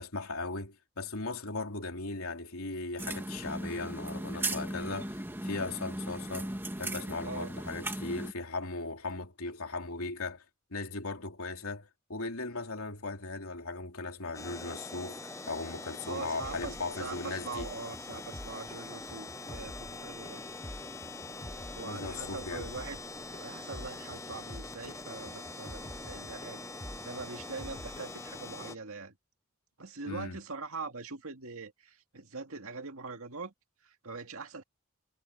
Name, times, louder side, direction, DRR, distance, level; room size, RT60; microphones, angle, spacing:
voice 1, 0.0-10.4 10.7-15.2 15.5-17.7 21.8-22.7 30.1-30.4, left 3 dB, 75° left, 3.1 m, -38 dB
sound 1, 3.0-8.3, right 1 dB, 10° right, 1.8 m, -37 dB
sound 2, 14.3-28.8, left 3 dB, 15° left, 0.8 m, -44 dB
voice 2, 16.1-16.7 17.0-20.4 21.7-26.7 27.0-29.1 29.8-33.5 33.8-34.6, right 3 dB, 75° right, 2.2 m, -42 dB
sound 3, 16.4-28.7, equal, 30° left, 4.8 m, -48 dB
head